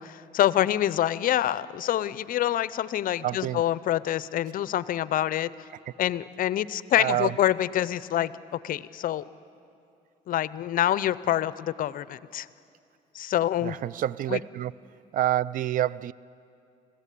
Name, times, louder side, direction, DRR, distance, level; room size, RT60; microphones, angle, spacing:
voice 1, 0.0-5.5 6.0-8.3 8.6-9.2 10.3-12.5 13.1-13.7 14.3-14.4, left 12 dB, 55° left, 17 dB, 0.6 m, -26 dB
voice 2, 3.2-3.6 5.9-6.0 7.0-7.4 13.6-14.7 15.1-16.1, right 12 dB, 55° right, 21 dB, 0.4 m, -27 dB
26.0 x 16.5 x 8.4 m, 2.6 s
cardioid pair, 110°, 17 cm